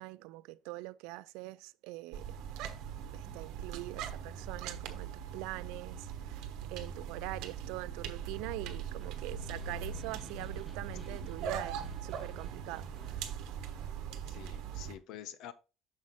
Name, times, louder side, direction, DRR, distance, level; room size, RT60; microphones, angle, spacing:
voice 1, 0.0-2.3 3.1-13.4, right 20 dB, 90° right, 0.3 m, -44 dB
sound 1, 2.1-14.9, right 7 dB, 75° right, 1.0 m, -41 dB
Snare drum, 8.4-13.3, right 2 dB, 10° right, 2.0 m, -56 dB
voice 2, 14.3-15.5, left 10 dB, 70° left, 0.7 m, -48 dB
6.4 x 5.6 x 3.1 m
cardioid pair, 135°, 0 cm